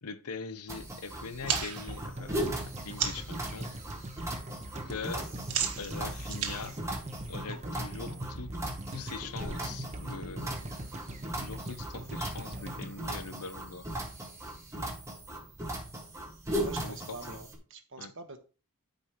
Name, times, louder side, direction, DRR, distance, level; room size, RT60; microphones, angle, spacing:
voice 1, 0.0-3.7 4.9-5.3 5.8-6.8 7.3-8.5 8.9-10.6 11.4-13.9 16.8-17.4 18.0-18.1, left 5 dB, 80° left, 0.8 m, -42 dB
sound 1, 0.7-17.6, right 1 dB, 15° right, 1.7 m, -38 dB
sound 2, 1.5-3.4 3.8-4.2 4.5-7.7, right 8 dB, 90° right, 1.4 m, -35 dB
sound 3, 1.9-14.1 14.3-14.4, right 1 dB, 30° right, 1.1 m, -42 dB
voice 2, 16.5-18.4, right 4 dB, 60° right, 1.2 m, -46 dB
12.5 x 5.2 x 3.0 m
head